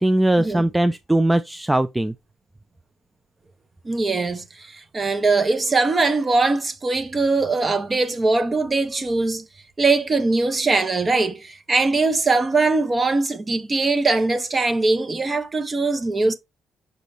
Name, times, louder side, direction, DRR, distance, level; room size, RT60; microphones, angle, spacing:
voice 1, 0.0-2.1, right 1 dB, 10° right, 0.4 m, -20 dB
voice 2, 3.8-9.4 9.8-16.3, right 3 dB, 30° right, 1.2 m, -21 dB
6.4 x 5.0 x 3.1 m
cardioid pair, 90°, 0 cm